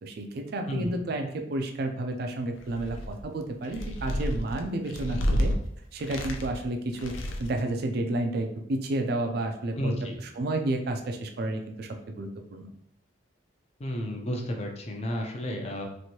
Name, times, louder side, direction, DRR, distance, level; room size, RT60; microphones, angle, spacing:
voice 1, 0.0-5.5 5.9-7.1 7.4-11.9 12.2-12.7, right 2 dB, 55° right, 4 dB, 0.4 m, -31 dB
sound 1, 2.6-3.2 3.6-5.6 6.0-6.6 6.9-7.6, equal, 85° left, 0.5 m, -30 dB
voice 2, 9.8-10.1 13.8-15.9, equal, 35° left, 2 dB, 0.5 m, -32 dB
3.1 x 2.6 x 2.8 m, 0.71 s
head